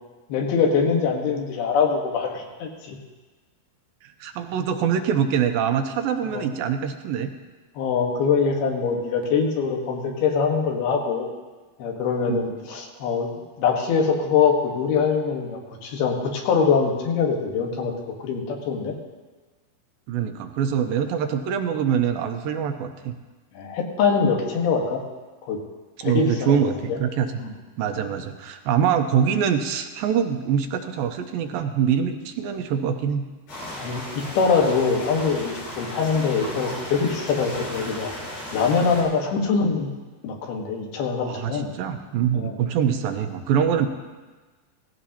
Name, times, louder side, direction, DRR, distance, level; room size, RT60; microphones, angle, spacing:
voice 1, 0.3-3.0 6.3-6.5 7.8-11.3 11.8-13.3 13.6-17.9 18.2-19.0 23.5-25.0 25.4-25.6 26.0-27.0 27.4-27.5 33.8-38.1 38.5-39.9 40.2-41.7 42.3-42.6, left 5 dB, 85° left, 1 dB, 3.4 m, -23 dB
voice 2, 4.2-7.3 12.3-12.4 20.1-23.1 26.0-27.4 27.8-33.2 41.3-43.9, right 8 dB, 80° right, 5 dB, 2.5 m, -24 dB
sound 1, 33.5-39.0, left 1 dB, 60° left, 6.3 m, -35 dB
16.5 x 15.5 x 2.9 m, 1.3 s
omnidirectional pair, 4.3 m